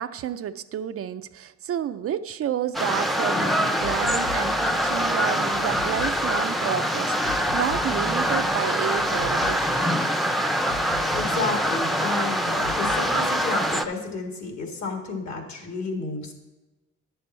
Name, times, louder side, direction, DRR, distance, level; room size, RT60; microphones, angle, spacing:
voice 1, 0.0-10.0, right 10 dB, 50° right, 11 dB, 0.4 m, -30 dB
sound 1, 2.7-13.8, equal, ahead, 0.6 m, -24 dB
sound 2, 3.8-11.3 11.5-11.9 12.6-13.0, left 4 dB, 90° left, 1.0 m, -40 dB
voice 2, 11.1-16.3, left 3 dB, 65° left, 3 dB, 1.9 m, -31 dB
10.5 x 6.9 x 4.4 m, 1.1 s
cardioid pair, 90°, 30 cm